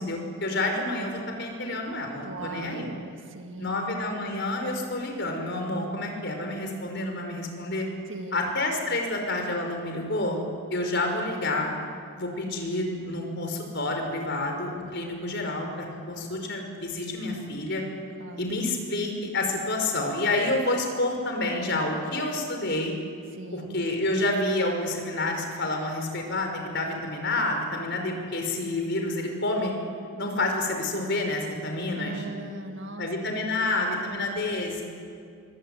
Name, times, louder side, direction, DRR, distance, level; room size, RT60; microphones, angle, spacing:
voice 1, 0.0-2.9 3.6-7.9 8.3-10.4 10.7-11.7 12.2-17.8 18.4-22.9 23.5-29.7 30.2-32.2 33.0-34.8, left 2 dB, 50° left, 3 dB, 5.3 m, -29 dB
voice 2, 2.2-3.8 8.1-8.4 18.2-18.5 23.3-23.8 31.9-33.1 33.4-34.2, right 2 dB, 55° right, 6 dB, 1.9 m, -40 dB
25.5 x 24.0 x 9.2 m, 2.3 s
head